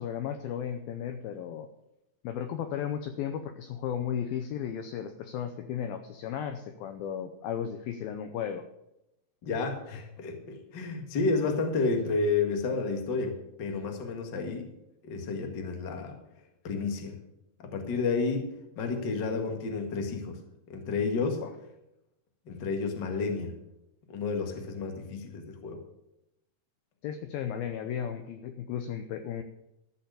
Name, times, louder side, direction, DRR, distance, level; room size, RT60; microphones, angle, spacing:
voice 1, 0.0-1.7 2.2-8.7 21.4-21.5 27.0-29.4, left 9 dB, 85° left, 8 dB, 2.1 m, -35 dB
voice 2, 9.4-14.7 15.0-16.2 16.6-17.1 17.6-18.4 18.7-20.4 20.7-21.4 22.4-23.6 24.1-25.8, left 4 dB, 65° left, 4 dB, 1.0 m, -31 dB
13.5 x 6.7 x 6.9 m, 0.87 s
omnidirectional pair, 5.1 m